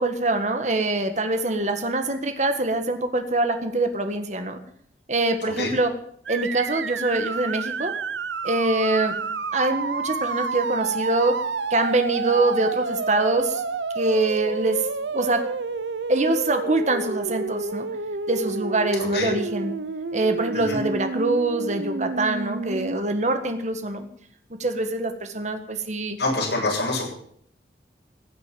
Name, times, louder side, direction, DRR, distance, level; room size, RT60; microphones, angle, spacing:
voice 1, 0.0-4.6 5.1-5.9 6.3-7.9 8.4-9.2 9.5-11.3 11.7-13.6 13.9-14.8 15.1-15.4 16.1-17.9 18.3-19.7 20.1-24.1 24.6-26.2, right 2 dB, 40° right, 7 dB, 1.6 m, -24 dB
sound 1, 6.3-23.0, right 4 dB, 85° right, 0.8 m, -29 dB
voice 2, 19.0-19.3 20.6-20.8 26.2-27.1, left 2 dB, 75° left, -2 dB, 7.6 m, -26 dB
15.5 x 8.2 x 8.7 m, 0.65 s
head